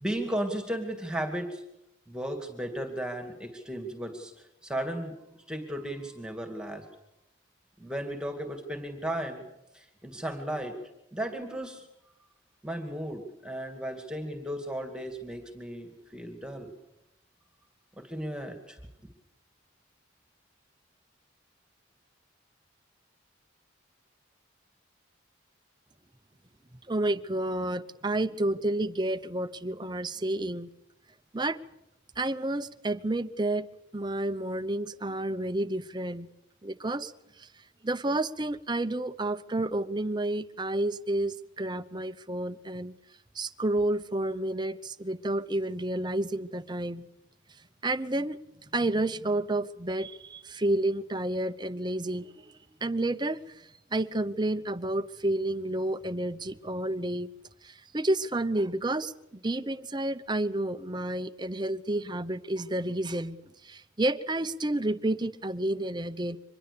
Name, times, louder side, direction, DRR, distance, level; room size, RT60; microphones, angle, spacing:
voice 1, 0.0-1.6 2.1-5.1 5.5-6.8 7.8-9.4 9.7-10.7 11.1-11.9 12.6-16.7 18.0-18.8, right 1 dB, 5° right, 5 dB, 2.3 m, -35 dB
voice 2, 26.9-30.7 31.3-31.6 32.2-33.7 33.9-36.3 36.6-37.1 37.4-37.5 37.8-43.0 43.3-47.1 47.8-52.5 52.8-57.3 57.6-63.4 63.6-66.4, right 1 dB, 20° right, 12 dB, 0.8 m, -30 dB
25.0 x 21.0 x 6.9 m, 0.86 s
head